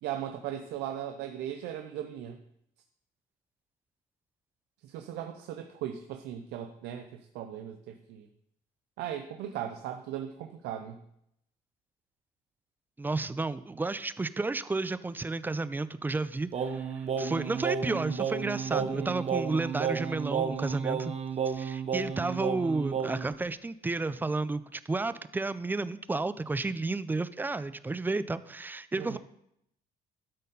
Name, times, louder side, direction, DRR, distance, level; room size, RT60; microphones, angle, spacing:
voice 1, 0.0-2.4 4.8-8.3 9.0-11.0 18.8-19.1 29.0-29.2, right 10 dB, 85° right, 6 dB, 0.6 m, -38 dB
voice 2, 13.0-16.9 17.2-21.1 21.5-29.2, right 3 dB, 10° right, 15 dB, 0.4 m, -32 dB
Singing, 16.5-23.3, right 7 dB, 40° right, 0.9 m, -32 dB
12.0 x 4.2 x 5.4 m, 0.75 s
cardioid pair, 110°, 17 cm